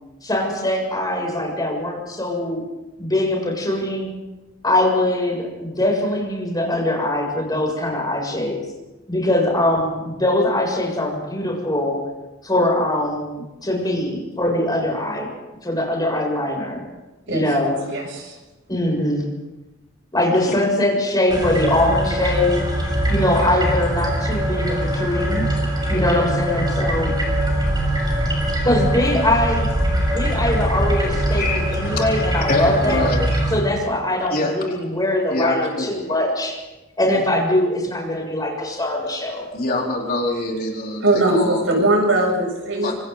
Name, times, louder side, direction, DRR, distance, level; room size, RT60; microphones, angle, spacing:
voice 1, 0.2-2.6 3.0-4.1 4.6-8.6 9.1-12.0 12.4-15.3 15.6-16.8 17.3-17.8 18.7-19.2 20.1-22.6 23.1-25.5 25.9-27.1 28.6-29.7 30.1-33.1 33.5-36.6 37.0-39.4, left 1 dB, 20° left, -1 dB, 7.2 m, -22 dB
voice 2, 17.9-18.3 41.0-42.9, right 2 dB, 70° right, 0 dB, 7.5 m, -20 dB
sound 1, 21.3-33.6, right 1 dB, 20° right, 6.8 m, -22 dB
voice 3, 31.1-32.2 32.5-33.4 34.3-34.8 35.3-35.9 39.5-41.9 42.8-42.9, left 2 dB, 50° left, -1 dB, 4.0 m, -25 dB
26.0 x 25.5 x 4.1 m, 1.1 s
head